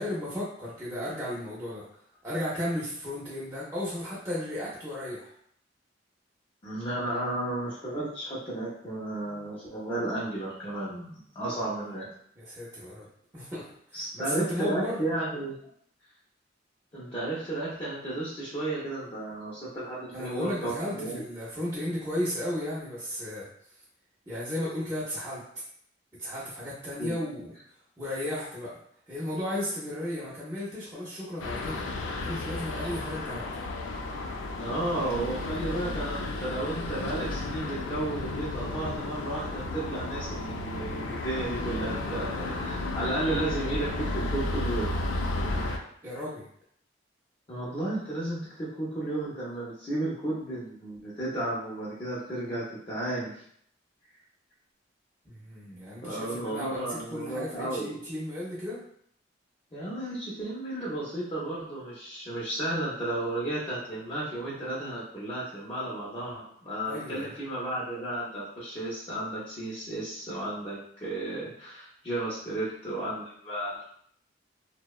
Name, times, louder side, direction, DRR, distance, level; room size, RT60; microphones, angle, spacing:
voice 1, 0.0-1.8 2.2-5.3 11.6-11.7 12.4-13.1 13.3-15.0 20.1-23.5 24.3-25.4 26.2-27.5 28.0-28.8 29.1-31.8 32.2-33.6 46.0-46.5 55.2-58.8 66.9-67.3, left 1 dB, 15° right, -9 dB, 0.5 m, -34 dB
voice 2, 6.6-12.1 13.9-15.5 16.9-21.2 27.0-27.1 34.6-44.9 47.5-53.4 56.0-58.0 59.7-73.8, right 1 dB, 30° left, -8 dB, 0.5 m, -33 dB
Budapest Thruway, 31.4-45.8, left 2 dB, 85° left, 0.4 m, -33 dB
2.7 x 2.0 x 2.3 m, 0.66 s
head